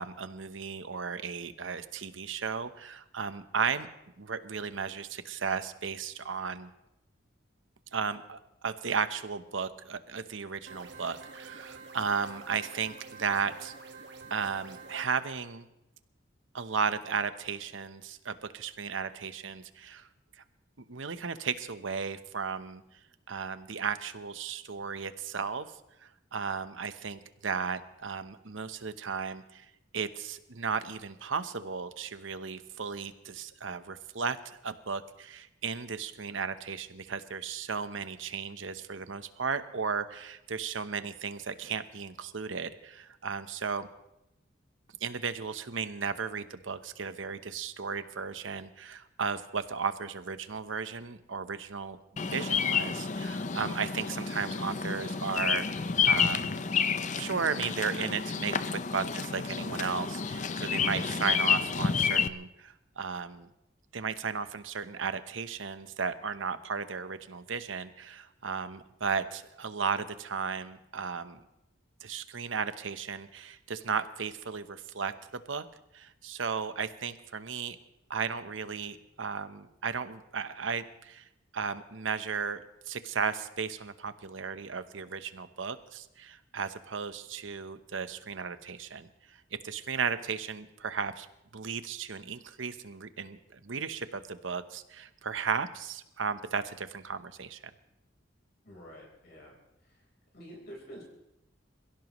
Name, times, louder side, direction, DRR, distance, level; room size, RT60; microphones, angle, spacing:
voice 1, 0.0-3.9 4.2-6.7 7.9-13.7 14.3-15.7 16.5-20.1 20.9-22.8 23.3-25.7 26.0-29.7 29.9-43.9 45.0-56.6 57.1-63.5 63.9-71.4 72.0-75.1 75.5-75.6 75.9-77.8 78.1-81.3 81.5-89.4 89.6-91.3 91.5-97.6, right 5 dB, 85° right, 11 dB, 0.9 m, -35 dB
sound 1, 10.7-15.1, right 4 dB, 60° right, 1.5 m, -48 dB
Bird vocalization bird call bird song, 52.2-62.3, left 6 dB, 40° left, 0.6 m, -30 dB
voice 2, 60.8-61.1 98.6-99.6 99.8-100.1 100.3-101.0, equal, 55° left, -2 dB, 4.3 m, -48 dB
27.5 x 16.5 x 3.1 m, 0.86 s
head